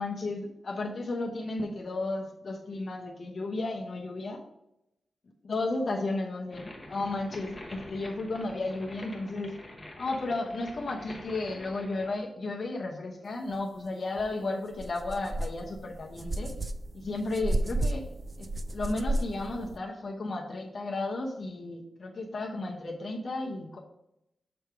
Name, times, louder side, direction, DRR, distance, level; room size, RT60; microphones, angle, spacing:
voice 1, 0.0-4.4 5.5-9.5 10.0-16.5 16.9-18.1 18.4-23.8, left 2 dB, 50° left, 1 dB, 0.8 m, -33 dB
sound 1, 6.5-12.2, left 1 dB, 15° left, 1.0 m, -46 dB
sound 2, 14.2-14.3 14.7-19.8, right 1 dB, 30° right, 0.4 m, -33 dB
6.9 x 3.3 x 4.5 m, 0.85 s
wide cardioid pair, 125°, 0 cm